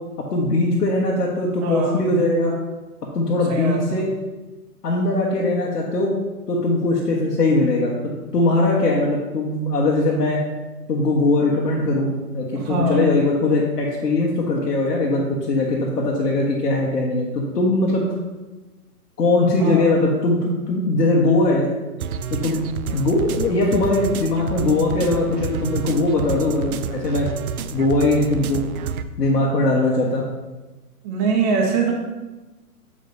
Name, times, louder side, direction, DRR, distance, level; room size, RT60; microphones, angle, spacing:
voice 1, 0.3-2.5 3.1-4.1 4.8-6.1 6.5-10.4 10.9-18.1 19.2-21.7 22.3-22.7 22.9-27.3 27.7-28.6 29.2-30.2, left 2 dB, 90° left, -3 dB, 1.3 m, -20 dB
voice 2, 1.6-2.1 3.5-4.1 12.5-13.1 19.6-19.9 31.0-31.9, right 3 dB, 25° right, 1 dB, 0.7 m, -23 dB
sound 1, 22.0-29.0, right 6 dB, 65° right, 0.5 m, -30 dB
7.4 x 5.3 x 2.7 m, 1.1 s
hypercardioid pair, 140°, 47 cm